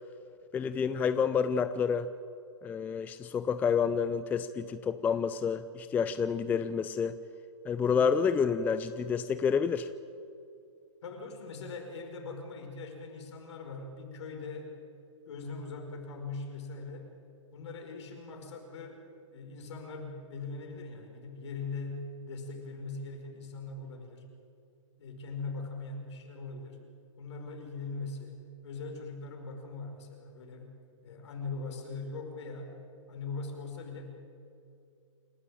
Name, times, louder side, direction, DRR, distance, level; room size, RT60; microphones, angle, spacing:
voice 1, 0.5-2.1 2.6-7.2 7.7-9.9, left 6 dB, 10° left, 12 dB, 0.4 m, -29 dB
voice 2, 11.0-14.8 15.3-17.1 17.5-19.0 19.3-24.2 25.0-26.8 27.2-28.4 28.6-30.7 31.0-32.7 33.1-34.1, left 3 dB, 60° left, 3 dB, 5.3 m, -41 dB
28.0 x 12.5 x 9.0 m, 2.5 s
hypercardioid pair, 135°, 17 cm